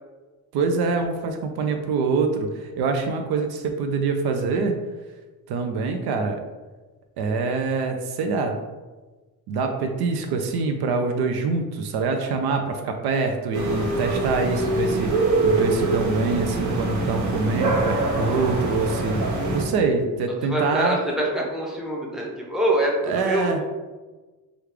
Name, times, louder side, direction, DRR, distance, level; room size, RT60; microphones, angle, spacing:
voice 1, 0.5-4.7 5.5-6.4 7.2-8.6 9.5-19.2 19.5-21.0 23.1-23.6, right 4 dB, 70° right, 5 dB, 0.5 m, -25 dB
sound 1, 13.5-19.6, right 2 dB, 45° right, 0.9 m, -24 dB
voice 2, 20.4-23.6, right 1 dB, ahead, -2 dB, 0.7 m, -25 dB
3.1 x 2.4 x 3.2 m, 1.2 s
cardioid pair, 90°, 40 cm